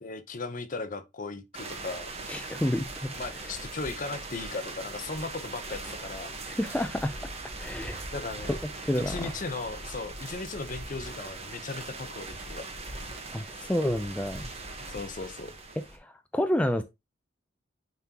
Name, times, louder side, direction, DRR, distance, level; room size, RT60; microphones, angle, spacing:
voice 1, 0.0-2.1 3.1-6.3 8.1-8.6 9.0-12.6 14.9-15.5, left 3 dB, 45° left, 0.8 m, -37 dB
sound 1, 1.5-16.0, right 2 dB, 35° right, 1.3 m, -40 dB
voice 2, 2.2-3.1 6.5-7.2 7.6-8.0 8.5-8.6 8.8-9.3 13.3-14.5 16.0-16.8, left 1 dB, 5° left, 0.4 m, -29 dB
9.2 x 3.7 x 2.9 m
head